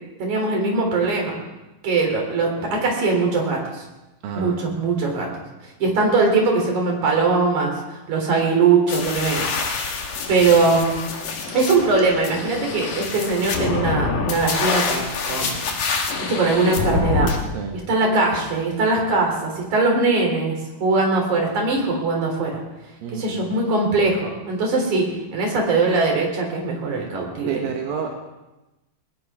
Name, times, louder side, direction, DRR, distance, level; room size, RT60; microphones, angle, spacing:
voice 1, 0.2-1.3 1.8-3.8 4.4-5.3 5.8-9.5 10.3-11.0 11.5-15.6 16.3-17.3 17.7-22.6 23.1-27.6, right 3 dB, 60° right, 1 dB, 4.8 m, -21 dB
voice 2, 4.2-4.7 17.5-17.8 23.0-23.5 27.5-28.1, right 6 dB, 90° right, 1 dB, 3.3 m, -30 dB
sound 1, 8.9-17.4, left 4 dB, 65° left, 3.2 m, -26 dB
21.0 x 19.0 x 3.7 m, 1.0 s
omnidirectional pair, 4.0 m